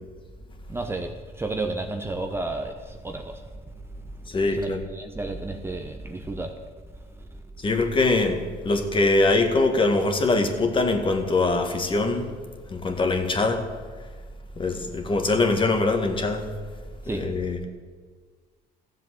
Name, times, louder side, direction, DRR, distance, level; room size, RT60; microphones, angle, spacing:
voice 1, 0.7-3.4 4.5-6.5 17.0-17.3, right 2 dB, 15° right, 0.9 m, -32 dB
voice 2, 4.3-4.8 7.6-12.3 12.7-13.6 14.6-16.4 17.1-17.7, left 3 dB, 30° left, 1.8 m, -23 dB
14.0 x 7.6 x 7.7 m
cardioid pair, 110°, 17 cm